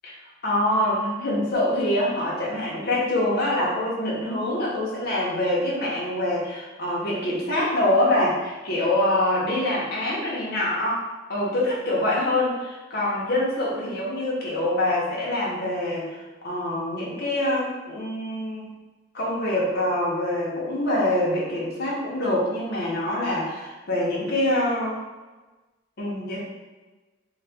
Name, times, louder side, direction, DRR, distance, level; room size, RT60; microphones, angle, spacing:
voice 1, 0.0-18.7 19.1-25.0 26.0-26.4, left 1 dB, 55° left, -5 dB, 0.7 m, -25 dB
2.8 x 2.2 x 3.3 m, 1.2 s
head